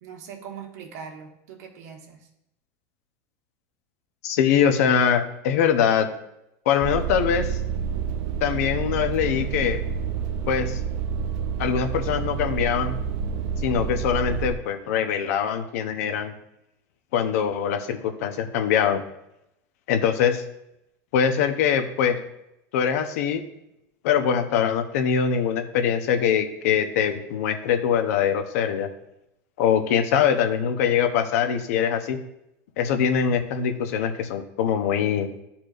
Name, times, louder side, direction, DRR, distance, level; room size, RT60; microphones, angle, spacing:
voice 1, 0.0-2.3, right 7 dB, 85° right, 0 dB, 1.5 m, -41 dB
voice 2, 4.2-6.1 6.7-7.6 8.4-9.8 10.5-10.8 11.6-12.9 13.6-16.3 17.1-19.0 19.9-20.4 21.1-22.2 22.7-23.4 24.0-28.9 29.6-32.2 32.8-35.3, left 8 dB, 75° left, 7 dB, 0.9 m, -23 dB
sound 1, 6.8-14.5, right 7 dB, 55° right, 0.5 m, -28 dB
11.5 x 4.3 x 2.6 m, 0.82 s
supercardioid pair, 155°, 8 cm